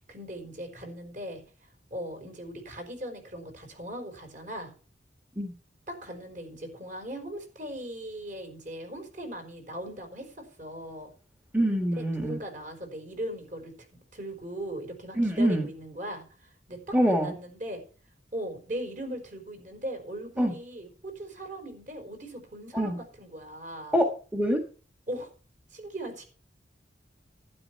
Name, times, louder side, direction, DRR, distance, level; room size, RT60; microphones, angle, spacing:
voice 1, 0.0-1.4 1.9-4.7 5.9-11.1 11.8-13.7 14.1-17.8 18.3-23.9 25.1-25.3 25.7-26.2, right 1 dB, 45° right, 5 dB, 4.8 m, -39 dB
voice 2, 11.5-12.4 15.2-15.6 16.9-17.3 20.4-20.5 22.7-23.0 23.9-24.6, equal, 10° right, 4 dB, 1.5 m, -25 dB
12.0 x 11.0 x 4.6 m, 0.38 s
head